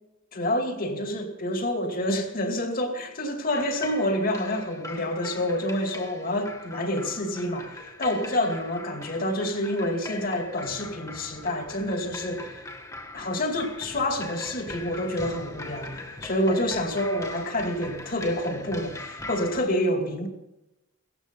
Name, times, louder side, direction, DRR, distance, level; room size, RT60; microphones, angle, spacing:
voice 1, 0.3-12.6 13.1-20.3, left 1 dB, 45° left, 2.5 m, -28 dB
sound 1, 3.5-19.6, left 2 dB, 15° left, 1.6 m, -41 dB
17.5 x 14.5 x 5.4 m
head